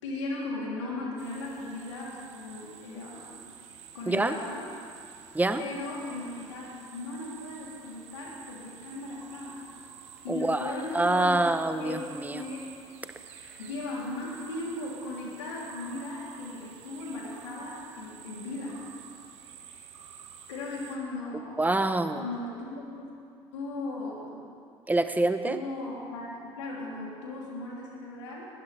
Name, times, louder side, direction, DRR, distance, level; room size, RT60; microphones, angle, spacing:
voice 1, 0.0-3.5 3.9-4.7 5.6-6.6 6.9-9.7 10.2-12.1 12.3-12.6 13.6-18.8 20.5-21.6 22.1-23.1 23.5-24.4 25.4-28.5, left 2 dB, 80° left, -4 dB, 3.3 m, -37 dB
sound 1, 1.2-21.0, right 8 dB, 80° right, 1.4 m, -50 dB
voice 2, 10.3-12.4 21.6-22.2 24.9-25.6, right 2 dB, 10° right, 9 dB, 1.0 m, -26 dB
20.5 x 13.0 x 3.5 m, 2.4 s
hypercardioid pair, 65°, 15 cm